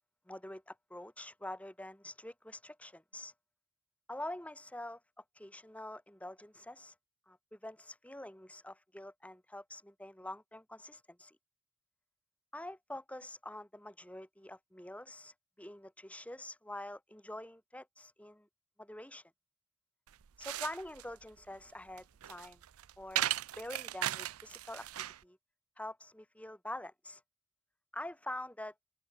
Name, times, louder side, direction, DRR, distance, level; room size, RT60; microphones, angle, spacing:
voice 1, 0.3-3.3 4.1-5.0 5.3-6.9 7.3-11.4 12.5-18.5 18.8-19.3 20.4-22.6 23.0-23.3 23.6-24.9 25.2-25.4 25.8-27.2 27.9-28.7, left 1 dB, 5° left, 1.6 m, -46 dB
sound 1, 20.1-25.2, right 13 dB, 80° right, 0.5 m, -38 dB
open air
head